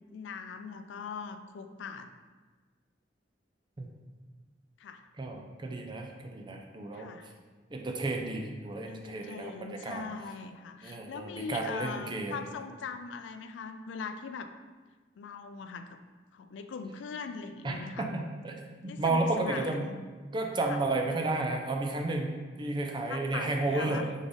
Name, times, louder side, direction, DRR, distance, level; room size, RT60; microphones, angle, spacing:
voice 1, 0.1-2.1 4.8-5.1 6.9-7.3 8.9-14.5 15.2-16.0 16.3-18.1 18.9-20.0 20.7-20.8 23.1-24.1, left 5 dB, 80° left, 9 dB, 0.3 m, -41 dB
voice 2, 5.2-7.1 7.7-10.0 10.8-12.3 17.6-19.9 20.3-24.1, right 2 dB, 25° right, 2 dB, 0.4 m, -32 dB
3.5 x 3.4 x 3.9 m, 1.4 s
head